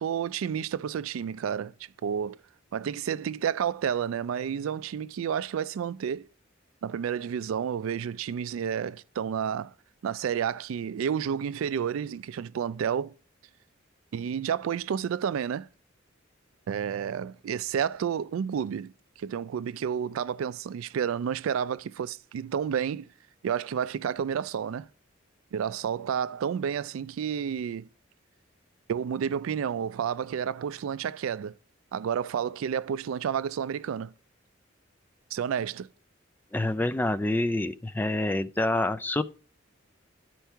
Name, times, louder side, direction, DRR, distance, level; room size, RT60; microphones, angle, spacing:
voice 1, 0.0-1.7 2.0-2.4 2.7-6.3 6.8-9.7 10.0-13.1 14.1-15.7 16.7-18.9 19.2-23.1 23.4-24.9 25.5-27.9 28.9-31.6 31.9-34.1 35.3-35.9, right 8 dB, 90° right, 0.3 m, -30 dB
voice 2, 36.5-39.2, left 1 dB, 10° left, 0.3 m, -27 dB
11.5 x 4.6 x 4.4 m
head